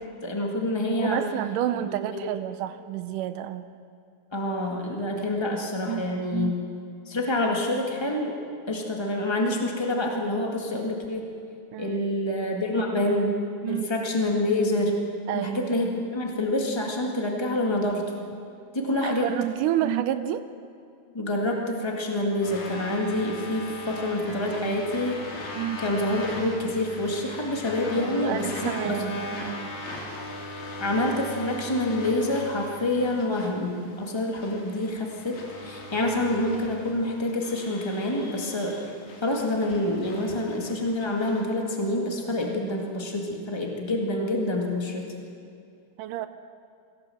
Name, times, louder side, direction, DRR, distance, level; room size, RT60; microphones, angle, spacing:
voice 1, 0.2-1.2 2.1-2.3 4.3-6.5 7.0-8.4 8.7-11.3 11.8-13.4 13.7-15.0 15.3-18.0 18.7-19.3 21.1-25.2 25.8-28.5 28.8-29.2 30.8-38.8 39.2-45.1, left 1 dB, 35° left, 0 dB, 0.4 m, -27 dB
voice 2, 1.0-3.6 5.9-6.0 6.3-6.5 11.7-12.0 13.6-13.9 15.3-15.9 19.0-20.5 25.6-25.8 28.0-29.7 46.0-46.3, right 12 dB, 80° right, 11 dB, 1.9 m, -29 dB
sound 1, 22.4-41.4, left 2 dB, 80° left, 5.3 m, -39 dB
22.5 x 17.5 x 7.8 m, 2.4 s
omnidirectional pair, 4.3 m